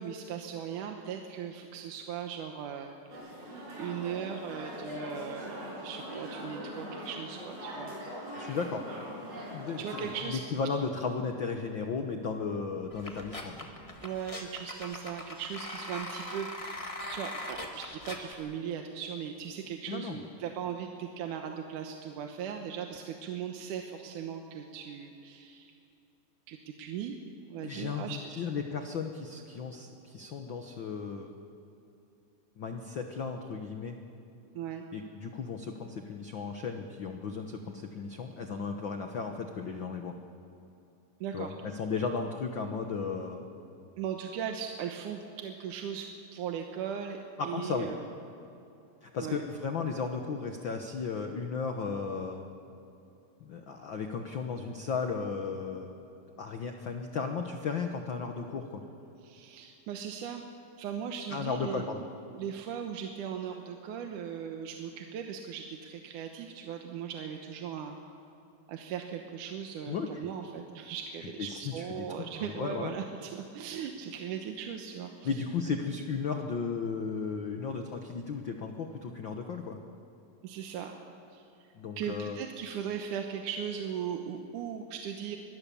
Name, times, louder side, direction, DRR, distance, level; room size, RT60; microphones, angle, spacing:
voice 1, 0.0-2.9 3.8-8.0 9.8-10.4 14.0-25.7 26.5-28.4 34.5-34.9 41.2-41.6 44.0-48.1 49.2-49.4 59.2-60.5 60.8-68.0 68.7-75.3 80.4-80.9 81.3-81.4 82.0-85.4, right 8 dB, 70° right, 3 dB, 2.4 m, -38 dB
sound 1, 3.1-10.2, equal, 50° right, 6.7 m, -41 dB
voice 2, 8.4-8.9 9.5-13.5 19.9-20.2 27.6-31.3 32.6-33.9 34.9-40.2 41.3-43.5 47.4-47.9 49.0-52.5 53.4-56.0 56.4-58.8 61.3-62.0 69.9-70.2 71.4-72.0 72.4-72.9 75.2-79.8 81.7-82.4, left 5 dB, 75° left, 4 dB, 1.1 m, -35 dB
sound 2, 12.9-18.3, left 1 dB, 25° left, 0.7 m, -41 dB
25.5 x 20.5 x 7.0 m, 2.8 s
omnidirectional pair, 3.9 m